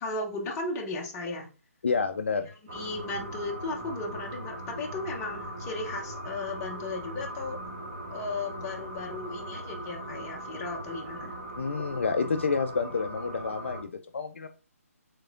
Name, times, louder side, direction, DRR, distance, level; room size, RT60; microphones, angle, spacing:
voice 1, 0.0-1.5 2.7-7.6 8.1-11.3, left 3 dB, 15° left, 0 dB, 0.7 m, -35 dB
voice 2, 1.8-2.5 11.6-14.5, left 5 dB, 50° left, 7 dB, 0.3 m, -29 dB
sound 1, 2.7-13.8, right 1 dB, 45° right, 1.2 m, -40 dB
4.6 x 3.7 x 2.4 m, 0.34 s
figure-of-eight pair, 145°, 8 cm